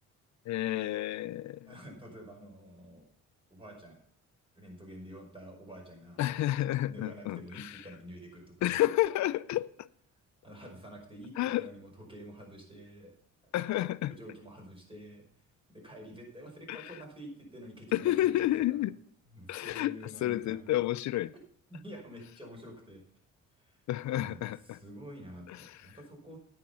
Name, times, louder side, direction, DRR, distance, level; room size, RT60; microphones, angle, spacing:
voice 1, 0.5-1.7 6.2-7.8 8.6-9.9 11.4-11.7 13.5-14.1 16.7-16.9 17.9-18.9 19.5-21.3 23.9-24.8 25.5-26.0, left 14 dB, 65° left, 0.5 m, -30 dB
voice 2, 1.7-3.1 3.5-4.0 4.5-6.2 6.9-8.8 10.4-13.1 13.4-13.5 14.1-15.2 15.7-18.5 19.3-20.7 21.7-23.0 23.6-23.8 24.1-26.4, equal, 15° right, 5.3 m, -48 dB
10.0 x 8.8 x 5.6 m
cardioid pair, 90°, 30 cm